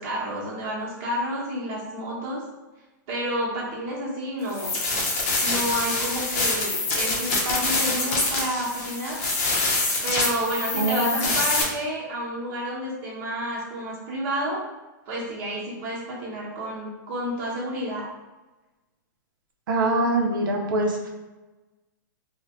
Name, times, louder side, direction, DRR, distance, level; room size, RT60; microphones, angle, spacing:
voice 1, 0.0-2.4 3.1-4.8 5.4-9.2 10.0-14.6 15.1-18.1, equal, 40° right, -5 dB, 0.9 m, -30 dB
sound 1, 4.5-11.6, left 2 dB, 45° left, 0.6 m, -25 dB
voice 2, 10.8-11.2 19.7-21.1, right 2 dB, 80° right, 1 dB, 0.5 m, -24 dB
2.6 x 2.1 x 3.0 m, 1.1 s
hypercardioid pair, 150°, 11 cm